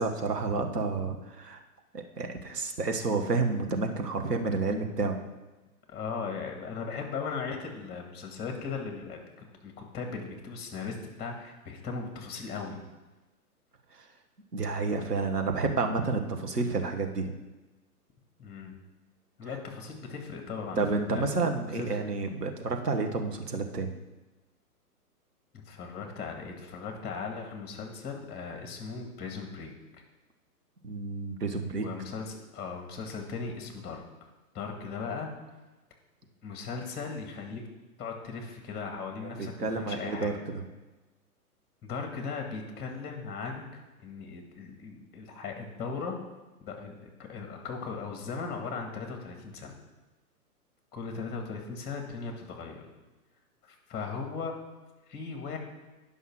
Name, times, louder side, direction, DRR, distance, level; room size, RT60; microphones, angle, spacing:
voice 1, 0.0-1.6 1.9-5.2 13.9-14.0 14.5-17.3 20.8-23.9 30.8-31.9 39.4-40.6, right 3 dB, 85° right, 4 dB, 1.6 m, -30 dB
voice 2, 5.9-9.3 9.6-12.8 18.4-18.8 19.4-21.3 21.6-21.9 25.5-29.7 31.8-34.0 34.5-35.3 36.4-37.6 38.0-40.4 41.8-46.2 46.6-49.8 50.9-52.8 53.7-54.5 55.1-55.6, left 5 dB, 20° left, 3 dB, 1.9 m, -38 dB
10.0 x 5.7 x 6.1 m, 1.1 s
figure-of-eight pair, 125°, 46 cm